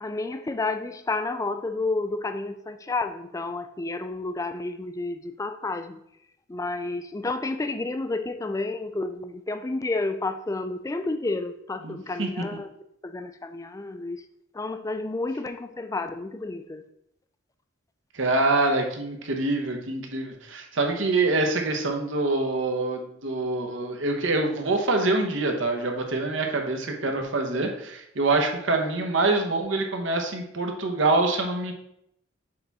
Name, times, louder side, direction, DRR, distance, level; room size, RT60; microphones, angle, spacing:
voice 1, 0.0-6.0 6.5-12.7 13.0-14.2 14.5-16.8, left 3 dB, 15° left, 9 dB, 0.3 m, -30 dB
voice 2, 11.8-12.4 18.1-31.7, right 2 dB, 70° right, 3 dB, 1.0 m, -25 dB
6.6 x 3.5 x 4.1 m, 0.76 s
head